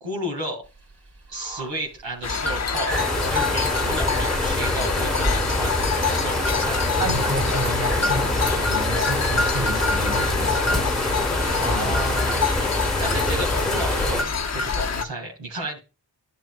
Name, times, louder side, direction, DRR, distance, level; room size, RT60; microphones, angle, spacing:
voice 1, 0.0-0.6 1.3-6.8 11.6-12.4 13.0-15.8, right 1 dB, 85° right, 2.2 m, -32 dB
sound 1, 0.6-15.1, right 2 dB, 65° right, 2.7 m, -39 dB
sound 2, 2.2-15.0, left 5 dB, 35° left, 0.8 m, -26 dB
sound 3, 2.9-14.2, left 1 dB, ahead, 1.2 m, -25 dB
voice 2, 7.0-11.2 11.7-12.0 12.6-12.9, equal, 35° right, 2.5 m, -31 dB
10.0 x 6.7 x 2.3 m
cardioid pair, 40°, 44 cm